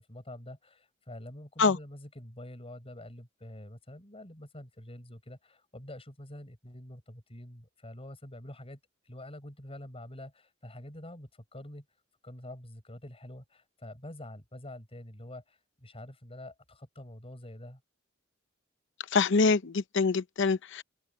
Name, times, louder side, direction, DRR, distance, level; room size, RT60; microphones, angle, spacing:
voice 1, 0.0-8.8 9.0-11.8 12.2-17.8, left 1 dB, 30° left, 6.8 m, -46 dB
voice 2, 19.1-20.8, left 4 dB, 60° left, 0.7 m, -25 dB
open air
head